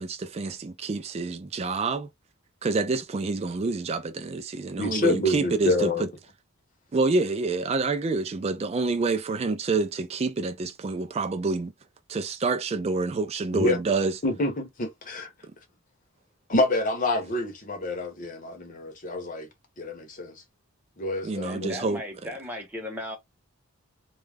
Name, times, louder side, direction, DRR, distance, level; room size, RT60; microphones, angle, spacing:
voice 1, 0.0-2.1 2.6-6.1 6.9-11.7 12.1-14.1 21.2-22.0, right 3 dB, 30° right, 0.3 m, -27 dB
voice 2, 4.8-6.1 13.5-13.8 14.2-15.3 16.5-19.5 19.8-20.3 21.0-21.8, left 1 dB, 40° left, 0.7 m, -27 dB
voice 3, 21.4-23.2, left 1 dB, 10° right, 0.8 m, -36 dB
2.3 x 2.0 x 3.3 m
head